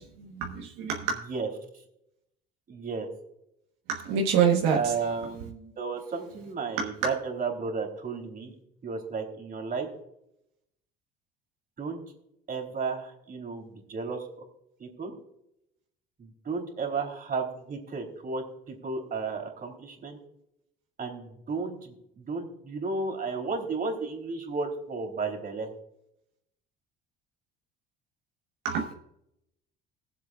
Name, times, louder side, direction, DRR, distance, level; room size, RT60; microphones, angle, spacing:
voice 1, 0.0-1.2 3.9-4.8 6.8-6.9 28.6-28.9, right 7 dB, 85° right, 0 dB, 1.3 m, -26 dB
voice 2, 2.7-3.1 4.7-8.5 8.8-9.9 11.8-12.0 12.5-14.4 14.8-15.1 16.2-20.2 21.0-25.7, right 4 dB, 40° right, 3 dB, 3.3 m, -33 dB
21.5 x 7.6 x 2.4 m, 0.79 s
supercardioid pair, 90°, 21 cm